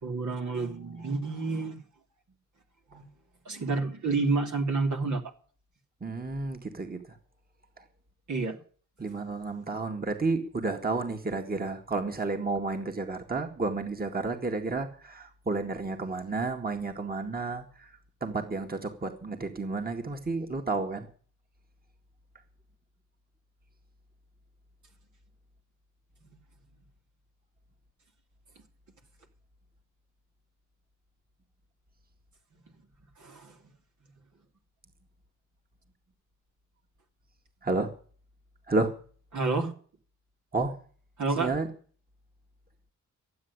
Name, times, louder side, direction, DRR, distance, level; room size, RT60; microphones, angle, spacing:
voice 1, 0.0-1.8 2.9-3.1 3.4-5.2 8.3-8.6 33.2-33.5 39.3-39.7 41.2-41.5, right 3 dB, 65° right, 3 dB, 3.1 m, -29 dB
voice 2, 6.0-7.2 7.8-7.9 9.0-17.9 18.2-21.1 37.6-37.9 38.7-38.9 40.5-40.8 41.4-41.7, right 3 dB, 30° right, 5 dB, 2.1 m, -31 dB
12.5 x 7.9 x 9.7 m, 0.43 s
cardioid pair, 75°, 31 cm